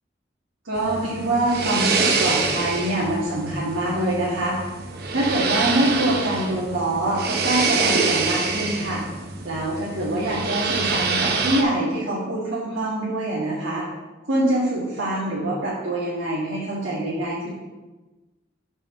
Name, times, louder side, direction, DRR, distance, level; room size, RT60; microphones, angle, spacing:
voice 1, 0.6-4.6 5.1-9.0 9.4-13.9 14.3-17.5, right 1 dB, 80° right, -8 dB, 1.9 m, -24 dB
sound 1, 0.7-11.6, right 4 dB, 55° right, 0.8 m, -26 dB
5.6 x 4.8 x 6.3 m, 1.2 s
head